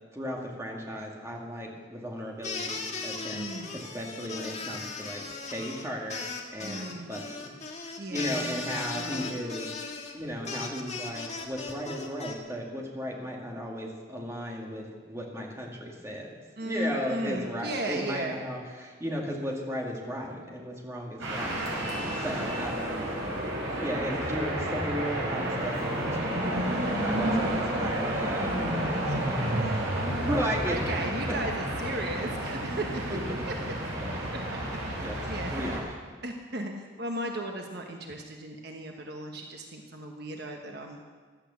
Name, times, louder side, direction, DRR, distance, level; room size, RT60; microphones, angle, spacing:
voice 1, 0.1-5.2 5.5-6.2 6.5-7.5 8.1-9.7 10.1-16.3 16.6-21.7 22.2-23.0 23.8-26.7 27.0-29.5 30.2-31.0 31.3-31.4 33.1-33.4 34.0-34.2 35.0-35.2 35.5-35.8, equal, 15° right, -1 dB, 2.2 m, -35 dB
sound 1, 2.4-12.3, left 4 dB, 35° left, 1.5 m, -37 dB
voice 2, 3.3-3.8 6.6-7.1 8.0-8.6 8.9-9.3 16.6-18.4 22.2-22.5 27.3-27.8 28.8-33.0 35.3-35.7 36.2-41.0, right 1 dB, 50° right, 2 dB, 1.3 m, -36 dB
sound 2, 21.2-35.8, right 1 dB, 65° right, 5.4 m, -30 dB
16.0 x 12.0 x 7.0 m, 1.5 s
head